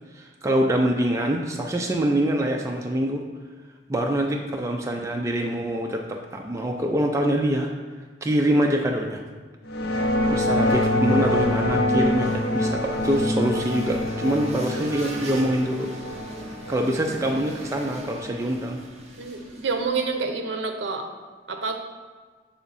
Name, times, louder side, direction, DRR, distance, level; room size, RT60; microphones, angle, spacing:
voice 1, 0.1-3.2 3.9-7.7 8.2-9.2 10.3-15.9 16.7-18.8, right 1 dB, 15° right, 1 dB, 0.3 m, -25 dB
sound 1, 9.7-18.3, left 1 dB, 55° left, 0.6 m, -25 dB
sound 2, 10.4-20.2, right 1 dB, 35° right, 0.8 m, -41 dB
voice 2, 19.2-21.1 21.5-21.8, right 4 dB, 65° right, 5 dB, 0.7 m, -28 dB
6.9 x 3.5 x 4.1 m, 1.4 s
head